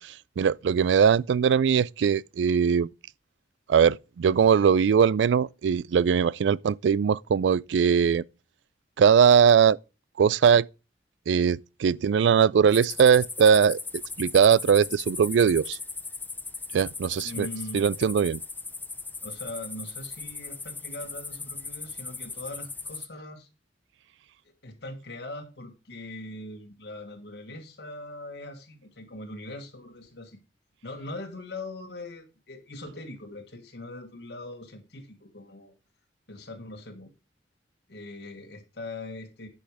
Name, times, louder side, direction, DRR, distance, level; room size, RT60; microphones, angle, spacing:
voice 1, 0.0-2.9 3.7-8.2 9.0-9.8 10.2-10.7 11.3-13.8 14.2-15.8 16.7-17.5 17.7-18.4, right 7 dB, 90° right, 0.3 m, -21 dB
sound 1, 12.7-23.1, left 4 dB, 10° left, 0.6 m, -38 dB
voice 2, 17.2-17.9 19.2-23.5 24.6-30.4 30.8-35.7 36.3-37.1 37.9-39.5, left 2 dB, 70° left, 1.5 m, -41 dB
10.5 x 5.4 x 4.8 m
head